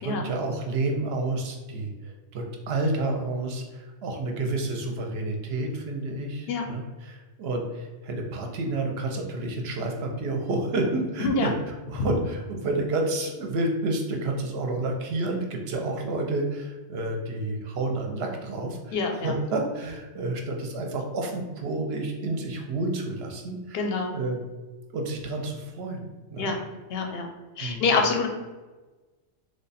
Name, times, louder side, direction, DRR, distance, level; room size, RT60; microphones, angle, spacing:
voice 1, 0.0-24.4 24.9-26.5 27.6-28.0, right 2 dB, 65° right, 2 dB, 0.7 m, -30 dB
voice 2, 18.9-19.3 23.7-24.1 26.4-26.6 26.9-27.3 27.6-28.3, left 4 dB, 60° left, 2 dB, 0.7 m, -26 dB
3.2 x 2.2 x 4.0 m, 1.2 s
omnidirectional pair, 1.3 m